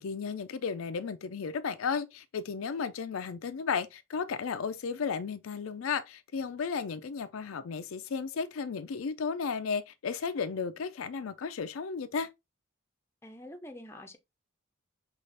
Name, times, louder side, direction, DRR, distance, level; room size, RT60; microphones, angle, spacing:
voice 1, 0.0-12.3, left 5 dB, 80° left, 0.5 m, -34 dB
voice 2, 13.2-14.2, left 1 dB, 10° left, 0.5 m, -46 dB
5.5 x 2.4 x 3.2 m
head